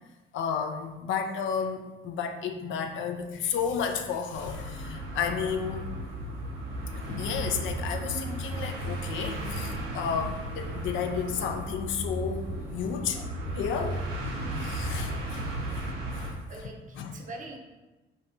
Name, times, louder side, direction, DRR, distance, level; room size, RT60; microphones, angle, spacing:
voice 1, 0.3-5.9 7.1-13.2 13.6-14.0 14.6-15.9 16.1-16.3 17.0-17.1, left 7 dB, 75° left, 5 dB, 0.4 m, -32 dB
sound 1, 4.3-16.3, right 1 dB, 90° right, 0.7 m, -35 dB
voice 2, 16.5-17.6, right 2 dB, 40° right, 1 dB, 0.6 m, -44 dB
2.7 x 2.3 x 4.0 m, 1.2 s
cardioid pair, 90°, 20 cm